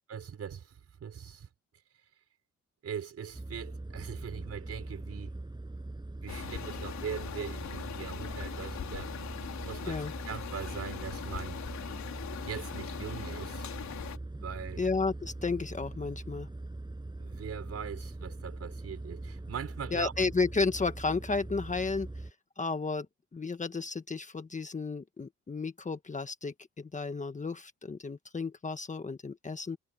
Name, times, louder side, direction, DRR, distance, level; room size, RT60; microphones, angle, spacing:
voice 1, 0.0-1.5 2.8-5.3 6.2-9.2 9.6-11.6 12.4-13.7 14.4-14.8 17.2-20.1, right 7 dB, 55° right, 5.7 m, -41 dB
sound 1, 3.3-22.3, right 2 dB, 15° right, 7.6 m, -42 dB
sound 2, 6.3-14.2, left 9 dB, 65° left, 3.9 m, -41 dB
voice 2, 14.8-16.5 19.9-22.3 22.6-23.1 23.3-29.8, left 4 dB, 25° left, 1.4 m, -33 dB
cardioid pair, 90°, 30 cm